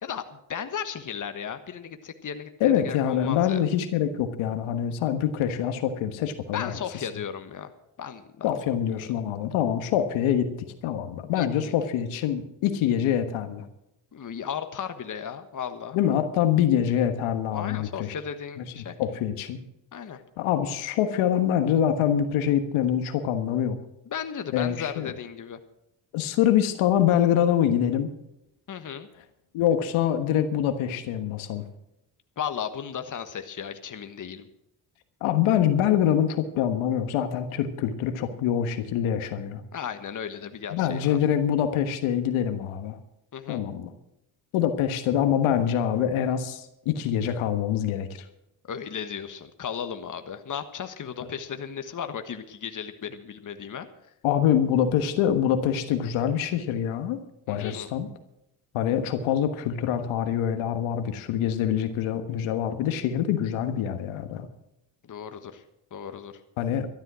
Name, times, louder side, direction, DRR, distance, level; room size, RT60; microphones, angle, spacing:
voice 1, 0.0-3.6 6.5-7.7 8.0-8.6 9.0-9.1 11.3-11.7 14.1-16.0 17.5-18.9 19.9-20.2 24.1-25.6 28.7-29.1 32.4-34.5 39.7-41.2 43.3-43.6 48.6-53.9 57.5-57.9 65.1-65.6 65.9-66.3, left 8 dB, 40° left, 8 dB, 1.4 m, -35 dB
voice 2, 2.6-6.8 8.4-10.5 10.8-13.6 15.9-18.1 18.6-18.7 19.0-19.6 20.4-23.8 24.5-25.1 26.1-28.1 29.5-31.6 35.2-39.6 40.7-43.0 43.5-43.9 44.5-48.2 54.2-57.2 57.5-58.1 58.7-64.5 66.6-66.9, left 9 dB, 80° left, 8 dB, 1.5 m, -25 dB
13.0 x 11.5 x 6.2 m, 0.82 s
supercardioid pair, 65°, 48 cm